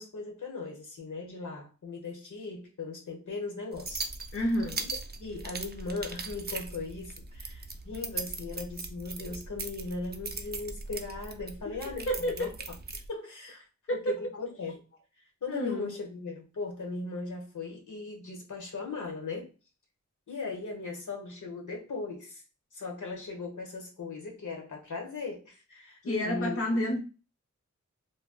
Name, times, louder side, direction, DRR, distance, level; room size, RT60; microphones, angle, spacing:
voice 1, 0.0-4.0 5.2-12.5 13.1-13.6 13.9-14.8 15.4-19.5 20.3-22.4 22.7-26.6, left 3 dB, 75° left, 1.0 m, -38 dB
sound 1, 3.7-13.1, right 3 dB, 35° right, 0.4 m, -39 dB
voice 2, 4.3-4.8 12.1-12.5 13.9-14.1 15.5-15.9 26.1-27.0, equal, 50° left, 0.6 m, -29 dB
2.3 x 2.1 x 3.7 m
wide cardioid pair, 85°, 30 cm